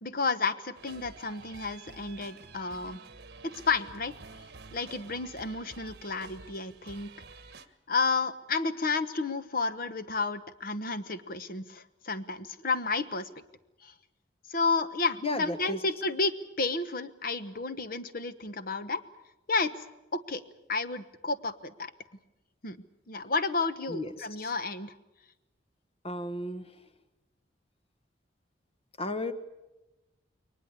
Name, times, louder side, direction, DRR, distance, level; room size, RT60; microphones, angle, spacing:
voice 1, 0.0-3.0 3.4-4.1 4.7-7.1 7.9-13.3 13.8-13.9 14.5-19.0 19.5-19.8 20.1-20.4 20.7-21.9 22.6-22.8 23.1-24.9, left 4 dB, 50° left, 12 dB, 1.1 m, -31 dB
sound 1, 0.7-7.7, right 4 dB, 55° right, 1.3 m, -49 dB
voice 2, 15.2-15.8 23.9-24.5 26.0-26.7 29.0-29.3, left 1 dB, 30° left, 10 dB, 1.3 m, -34 dB
22.0 x 19.5 x 8.4 m, 0.99 s
head